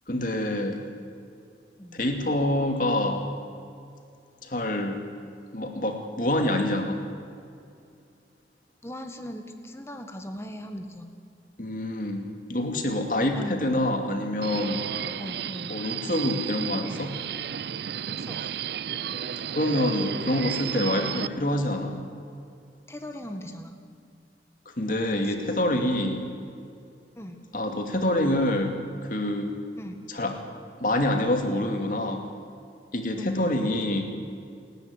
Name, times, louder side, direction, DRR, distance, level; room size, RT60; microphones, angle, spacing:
voice 1, 0.1-0.8 1.9-3.3 4.4-5.0 5.5-7.0 11.6-14.8 15.7-17.1 19.5-22.0 24.8-26.2 27.5-28.8 29.0-29.5 30.1-30.4 30.8-32.2 32.9-34.0, left 1 dB, 50° left, 4 dB, 2.5 m, -26 dB
voice 2, 8.8-11.1 13.4-13.5 15.2-15.8 18.2-18.4 22.9-23.8 25.2-25.3 27.2-27.4 29.8-30.0 33.2-33.6, equal, 15° left, 5 dB, 1.7 m, -39 dB
Subway metro underground, 14.4-21.3, right 8 dB, 65° right, 0.5 m, -33 dB
28.5 x 10.5 x 9.8 m, 2.5 s
head